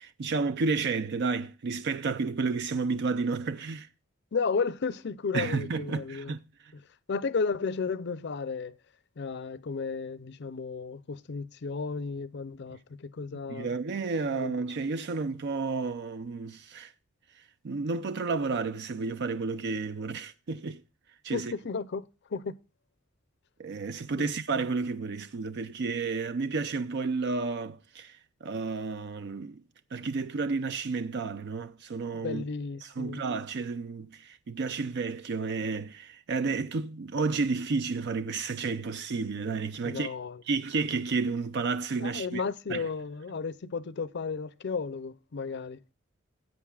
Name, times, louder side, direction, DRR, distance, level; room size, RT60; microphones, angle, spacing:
voice 1, 0.0-3.9 5.3-6.4 13.5-16.9 17.6-20.8 21.2-21.5 23.6-29.6 29.9-32.4 32.8-40.1 40.5-42.4 42.7-42.9, right 4 dB, 55° right, 0.5 m, -31 dB
voice 2, 4.3-6.3 6.7-6.8 7.1-8.8 9.2-13.7 14.2-14.6 21.3-22.6 24.2-24.3 32.2-33.2 39.8-40.4 42.0-45.8, left 5 dB, 55° left, 0.6 m, -33 dB
17.0 x 8.0 x 2.3 m
head